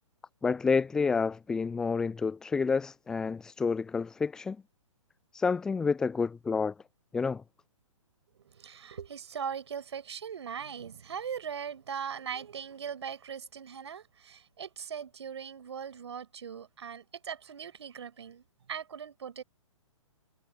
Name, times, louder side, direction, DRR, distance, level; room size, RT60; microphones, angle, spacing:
voice 1, 0.4-4.6 5.3-6.7 7.1-7.4, left 5 dB, 5° left, 0.3 m, -29 dB
voice 2, 8.5-19.4, right 7 dB, 55° right, 6.6 m, -40 dB
figure-of-eight pair, 120°, 17 cm